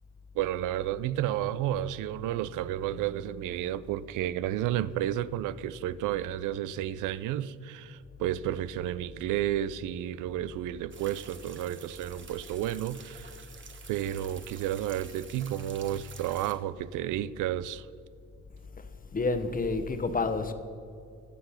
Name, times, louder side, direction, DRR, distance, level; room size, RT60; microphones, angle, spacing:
voice 1, 0.4-13.3 13.9-17.8, right 12 dB, 90° right, 0.5 m, -32 dB
sound 1, 10.9-16.5, right 5 dB, 40° right, 1.3 m, -49 dB
voice 2, 19.1-20.5, left 3 dB, 30° left, 1.0 m, -29 dB
16.0 x 6.8 x 5.7 m
cardioid pair, 90°, 30 cm